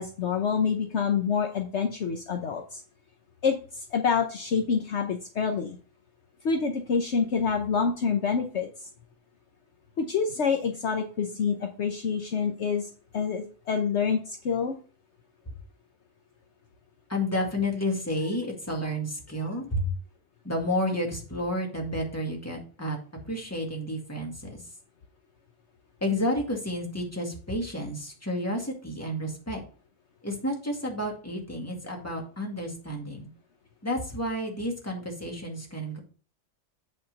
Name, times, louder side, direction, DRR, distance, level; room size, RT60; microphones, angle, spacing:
voice 1, 0.0-2.8 3.4-5.8 6.4-8.9 10.0-14.7, left 6 dB, 60° left, 4 dB, 1.1 m, -27 dB
voice 2, 17.1-19.9 20.4-23.0 23.2-24.7 26.0-29.6 30.2-33.3 33.8-36.0, left 1 dB, 10° left, 0 dB, 2.1 m, -31 dB
8.7 x 4.4 x 5.2 m, 0.39 s
omnidirectional pair, 1.4 m